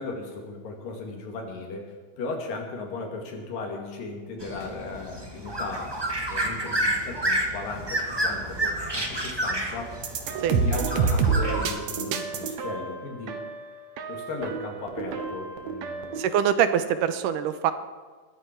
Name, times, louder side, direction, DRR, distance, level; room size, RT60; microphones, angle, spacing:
voice 1, 0.0-6.0 6.3-10.0 10.5-13.4 14.1-16.2, left 3 dB, 90° left, 2 dB, 4.1 m, -36 dB
sound 1, 4.4-11.7, right 1 dB, 20° right, 0.6 m, -30 dB
sound 2, 9.9-16.4, right 5 dB, 65° right, 2.2 m, -28 dB
voice 2, 16.2-17.7, right 9 dB, 80° right, 10 dB, 2.4 m, -23 dB
21.0 x 13.5 x 4.6 m, 1.4 s
omnidirectional pair, 3.8 m